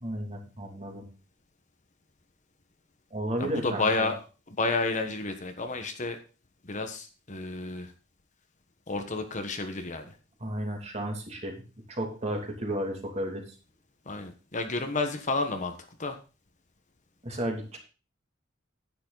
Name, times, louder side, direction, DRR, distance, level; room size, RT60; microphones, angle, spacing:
voice 1, 0.0-1.1 3.1-4.1 10.4-11.6 11.9-13.4 17.2-17.8, right 1 dB, 30° right, 2 dB, 2.6 m, -33 dB
voice 2, 3.4-4.2 4.5-6.2 6.6-7.9 8.9-10.1 14.1-15.7 16.0-16.2, left 3 dB, 35° left, 6 dB, 1.3 m, -30 dB
10.5 x 9.6 x 4.0 m, 0.33 s
head